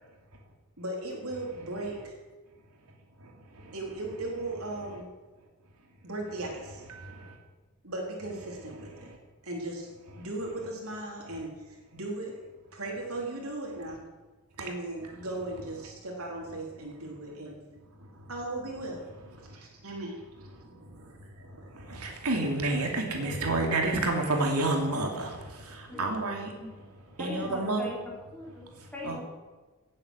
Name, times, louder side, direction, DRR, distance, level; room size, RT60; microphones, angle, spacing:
voice 1, 0.8-2.1 3.7-5.1 6.0-6.8 7.8-9.1 9.4-9.9 10.2-12.4 12.7-14.0 14.6-17.5 18.3-19.1 19.4-20.2, right 2 dB, 70° right, -1 dB, 3.7 m, -37 dB
voice 2, 22.0-25.3 26.0-26.5 27.2-27.8 29.0-29.1, right 2 dB, 90° right, 2 dB, 2.9 m, -28 dB
voice 3, 25.9-26.9 27.2-29.2, left 2 dB, 5° left, -3 dB, 4.2 m, -41 dB
17.0 x 8.6 x 8.1 m, 1.3 s
head